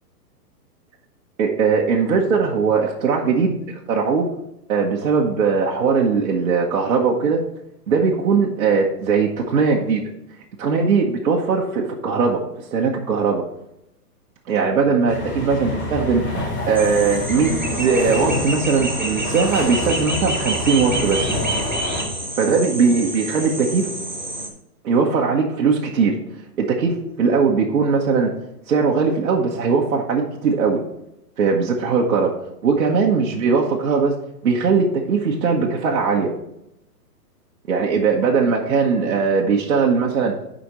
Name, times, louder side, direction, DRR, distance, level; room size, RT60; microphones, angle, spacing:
voice 1, 1.4-4.3 4.7-7.4 7.9-10.0 10.6-12.4 12.7-13.4 14.5-16.2 16.7-21.3 22.4-23.9 24.8-26.2 26.6-28.3 28.7-30.8 31.4-32.3 32.6-34.1 34.4-36.3 37.7-40.3, right 5 dB, 60° right, -1 dB, 1.2 m, -19 dB
sound 1, 15.1-22.0, left 2 dB, 40° left, 2.7 m, -27 dB
sound 2, 16.7-24.5, right 2 dB, 30° right, 0.4 m, -28 dB
10.5 x 5.1 x 3.1 m, 0.83 s
hypercardioid pair, 175°, 49 cm